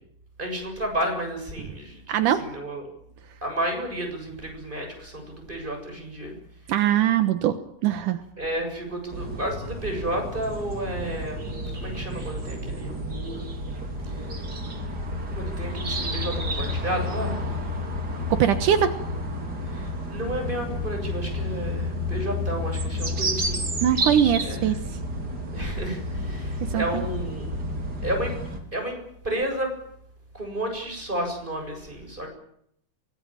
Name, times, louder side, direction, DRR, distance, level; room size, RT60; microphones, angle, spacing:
voice 1, 0.4-2.9 3.4-6.3 6.7-6.8 8.4-13.0 14.0-14.3 15.3-17.4 19.1-23.7 24.4-24.7 25.5-27.5 28.0-28.3 28.7-29.0 29.2-29.7 30.3-32.3, right 1 dB, 15° right, 3 dB, 7.4 m, -32 dB
voice 2, 2.1-2.5 6.7-7.6 7.8-8.2 18.3-19.0 23.8-24.8 26.7-27.0, right 10 dB, 75° right, 10 dB, 2.7 m, -21 dB
sound 1, 9.1-28.6, left 1 dB, 30° right, 3.5 m, -30 dB
24.5 x 19.5 x 9.0 m, 0.70 s
omnidirectional pair, 3.7 m